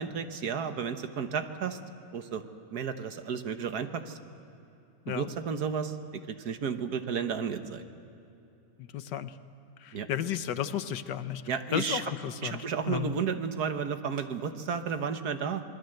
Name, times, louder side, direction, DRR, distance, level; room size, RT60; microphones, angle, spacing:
voice 1, 0.0-1.8 2.1-4.2 5.1-7.8 9.9-10.1 11.5-12.0 12.4-15.6, right 6 dB, 65° right, 8 dB, 1.6 m, -33 dB
voice 2, 8.8-9.4 9.8-11.4 11.7-13.1, left 10 dB, 80° left, 11 dB, 1.5 m, -33 dB
27.0 x 21.5 x 7.8 m, 2.8 s
omnidirectional pair, 1.9 m